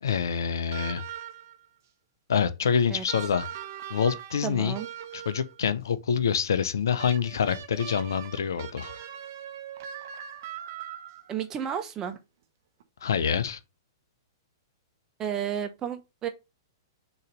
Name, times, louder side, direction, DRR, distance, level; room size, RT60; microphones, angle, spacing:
voice 1, 0.0-1.0 2.3-3.5 3.9-4.8 5.1-8.9 13.0-13.6, left 7 dB, 70° left, 0.7 m, -26 dB
sound 1, 0.7-1.7 3.1-5.6 7.0-11.4 12.8-12.9, right 9 dB, 55° right, 1.0 m, -41 dB
voice 2, 4.4-4.9 11.3-12.2 15.2-16.3, right 8 dB, 25° right, 1.1 m, -32 dB
6.6 x 3.1 x 5.3 m
figure-of-eight pair, 110°, 2 cm